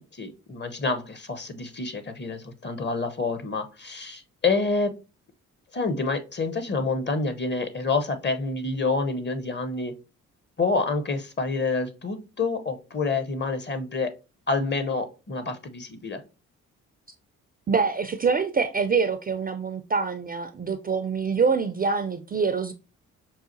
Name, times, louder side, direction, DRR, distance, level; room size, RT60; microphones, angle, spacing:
voice 1, 0.0-4.9 5.7-9.9 10.6-14.1 14.5-16.2, left 3 dB, 30° left, 0.7 m, -28 dB
voice 2, 17.7-22.7, right 5 dB, 25° right, 0.4 m, -25 dB
5.6 x 2.4 x 2.6 m
hypercardioid pair, 45°, 37 cm